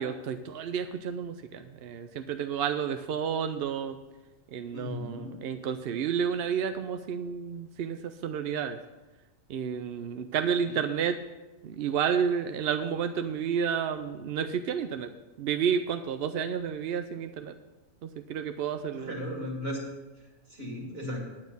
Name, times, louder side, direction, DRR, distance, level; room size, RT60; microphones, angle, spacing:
voice 1, 0.0-4.0 4.5-8.8 9.5-11.2 11.6-15.1 15.4-17.5 18.0-19.1, right 7 dB, 60° right, 8 dB, 0.6 m, -31 dB
voice 2, 4.7-5.3 10.6-10.8 18.9-19.8 20.5-21.2, left 1 dB, 45° right, -2 dB, 3.0 m, -36 dB
9.6 x 9.3 x 5.4 m, 1.1 s
omnidirectional pair, 1.4 m